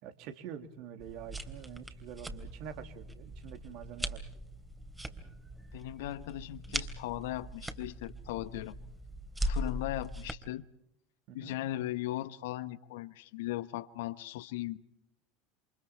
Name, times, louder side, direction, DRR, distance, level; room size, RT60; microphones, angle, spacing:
voice 1, 0.0-4.3 11.3-11.5, right 8 dB, 55° right, 2.9 m, -46 dB
sound 1, 1.0-10.3, equal, 10° right, 3.2 m, -40 dB
voice 2, 5.7-8.7 9.4-10.6 11.3-14.8, left 15 dB, 65° left, 1.1 m, -38 dB
29.0 x 27.5 x 4.4 m
figure-of-eight pair, 75°, 0 cm